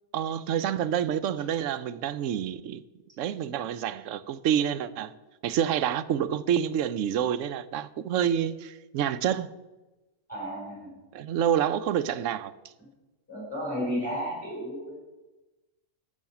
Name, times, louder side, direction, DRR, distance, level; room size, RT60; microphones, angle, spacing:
voice 1, 0.1-2.8 3.2-5.1 5.4-9.5 11.1-12.5, right 9 dB, 85° right, 0.9 m, -28 dB
voice 2, 10.3-10.9 13.3-14.9, equal, 5° left, 4.4 m, -33 dB
15.0 x 6.3 x 5.8 m
omnidirectional pair, 1.3 m